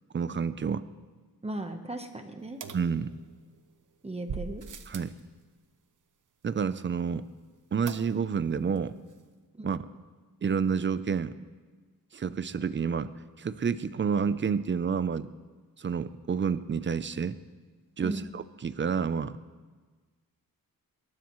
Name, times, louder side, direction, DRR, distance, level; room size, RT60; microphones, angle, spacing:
voice 1, 0.1-0.9 2.7-3.1 4.9-5.1 6.4-7.3 7.7-8.9 9.6-9.8 10.4-11.3 12.1-13.1 13.4-15.3 15.8-17.4 18.0-19.4, right 6 dB, 35° right, 14 dB, 0.6 m, -29 dB
voice 2, 1.4-2.6 4.0-4.6 9.5-9.7 18.0-18.2, right 1 dB, 15° right, 5 dB, 1.0 m, -37 dB
sound 1, 2.6-3.6 4.3-5.2 7.9-8.5 8.8-8.9 9.1-9.2, right 6 dB, 60° right, 1.0 m, -41 dB
22.5 x 20.5 x 3.1 m, 1.4 s
wide cardioid pair, 150°, 35 cm